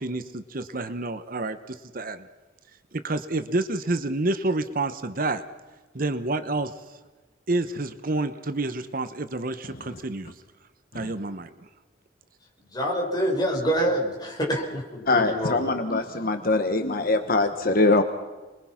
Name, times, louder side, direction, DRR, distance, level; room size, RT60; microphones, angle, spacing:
voice 1, 0.0-2.3 2.9-5.4 5.9-6.7 7.5-10.3 10.9-11.5, right 2 dB, 50° right, 11 dB, 1.0 m, -29 dB
voice 2, 12.7-15.7, equal, 20° left, 0 dB, 5.2 m, -26 dB
voice 3, 15.1-18.0, left 2 dB, 50° left, 7 dB, 1.2 m, -23 dB
29.5 x 22.0 x 5.9 m, 1.3 s
head